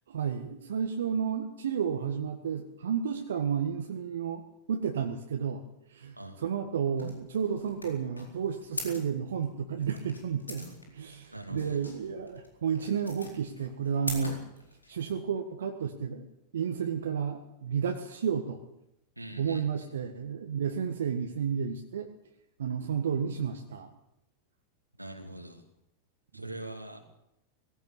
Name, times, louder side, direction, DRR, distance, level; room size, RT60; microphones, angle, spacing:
voice 1, 0.1-4.4 4.7-5.6 5.9-14.4 14.9-18.6 19.4-22.1 22.6-23.9 26.3-26.4, right 7 dB, 65° right, 5 dB, 1.6 m, -32 dB
sound 1, 7.0-15.1, left 2 dB, 80° left, 4.1 m, -43 dB
voice 2, 11.3-11.8 19.2-19.7 25.0-25.6 26.3-27.0, right 1 dB, 85° right, 5 dB, 2.5 m, -42 dB
18.5 x 16.5 x 8.5 m, 0.83 s
figure-of-eight pair, 90°, 0 cm